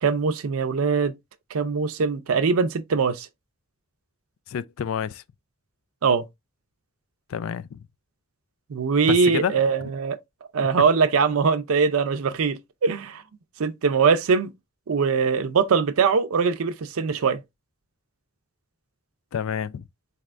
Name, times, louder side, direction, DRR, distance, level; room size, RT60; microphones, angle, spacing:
voice 1, 0.0-1.2 1.5-3.3 6.0-6.2 8.7-10.2 10.5-13.2 13.6-14.5 14.9-17.4, right 5 dB, 80° right, 0.5 m, -22 dB
voice 2, 4.5-5.2 7.3-7.8 9.1-9.6 19.3-19.8, left 8 dB, 75° left, 0.4 m, -29 dB
4.1 x 3.3 x 2.4 m
head